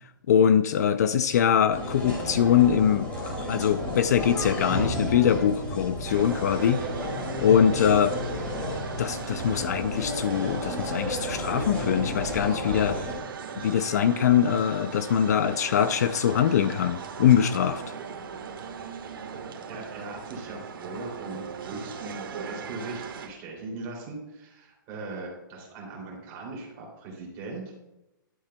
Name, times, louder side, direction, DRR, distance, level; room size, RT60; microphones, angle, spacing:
voice 1, 0.3-3.1 3.5-6.8 7.4-8.2 9.0-13.0 13.6-17.8, left 9 dB, 50° left, 12 dB, 0.4 m, -22 dB
sound 1, 1.7-13.1, left 1 dB, 10° left, 2.3 m, -32 dB
sound 2, 6.1-23.3, right 6 dB, 75° right, 1.4 m, -39 dB
voice 2, 19.6-27.8, right 3 dB, 25° right, -2 dB, 2.7 m, -39 dB
11.0 x 8.3 x 2.2 m, 0.96 s
hypercardioid pair, 170°, 12 cm